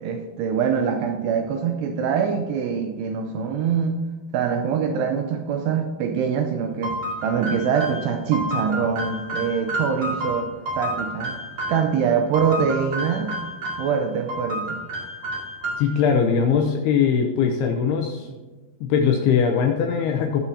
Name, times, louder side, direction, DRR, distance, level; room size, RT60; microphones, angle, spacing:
voice 1, 0.0-4.0 4.3-7.0 7.2-11.4 11.7-13.3 13.8-14.8, right 7 dB, 85° right, 4 dB, 2.5 m, -24 dB
sound 1, 6.8-11.9 12.3-14.0 14.3-16.0, equal, 40° right, 2.5 m, -30 dB
voice 2, 15.8-18.3 18.8-20.4, left 6 dB, 80° left, 2 dB, 2.4 m, -21 dB
19.0 x 7.1 x 2.7 m, 1.2 s
omnidirectional pair, 5.3 m